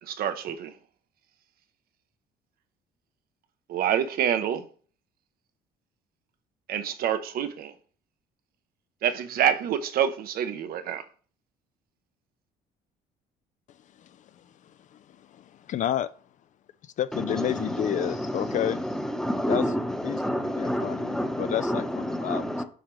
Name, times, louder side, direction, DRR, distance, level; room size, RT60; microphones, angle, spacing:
voice 1, 0.0-0.7 3.7-4.6 6.7-7.7 9.0-11.0, right 9 dB, 65° right, 0.7 m, -27 dB
voice 2, 14.9-16.1 17.0-18.8 19.5-19.6 20.0-22.6, left 11 dB, 50° left, 0.4 m, -30 dB
voice 3, 17.1-22.6, equal, 5° left, 0.8 m, -29 dB
7.8 x 4.9 x 3.1 m
cardioid pair, 110°, 17 cm